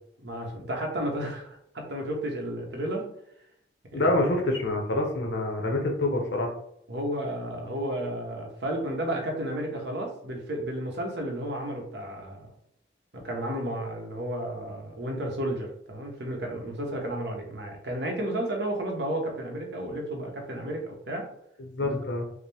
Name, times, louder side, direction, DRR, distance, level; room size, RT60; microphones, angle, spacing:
voice 1, 0.2-3.1 3.9-4.2 6.9-12.5 13.1-21.3 21.8-22.0, right 1 dB, 75° right, 1 dB, 1.0 m, -32 dB
voice 2, 3.9-6.5 21.7-22.2, left 2 dB, 80° left, 1 dB, 0.7 m, -26 dB
4.9 x 2.0 x 3.4 m, 0.72 s
head